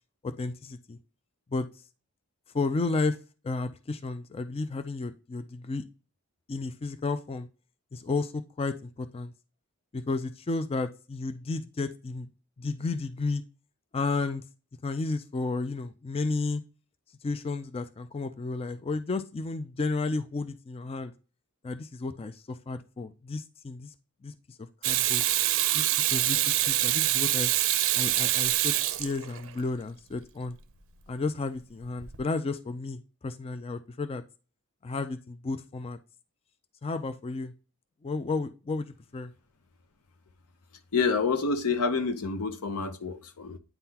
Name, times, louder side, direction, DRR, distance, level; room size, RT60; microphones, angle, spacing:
voice 1, 0.2-1.0 1.5-1.7 2.5-3.2 3.4-5.8 6.5-7.5 7.9-9.3 9.9-12.3 12.6-13.4 13.9-14.4 14.8-16.6 17.2-21.1 21.6-23.9 24.2-25.2 25.7-27.5 27.9-30.6 31.1-34.2 34.8-36.0 36.8-37.5 38.0-39.3, left 3 dB, 25° left, 0.3 m, -32 dB
Water tap faucet / Sink (filling or washing), 24.8-29.6 32.0-32.2, right 13 dB, 60° right, 0.5 m, -25 dB
voice 2, 40.9-43.6, left 4 dB, 85° left, 0.7 m, -28 dB
8.9 x 3.7 x 2.8 m
head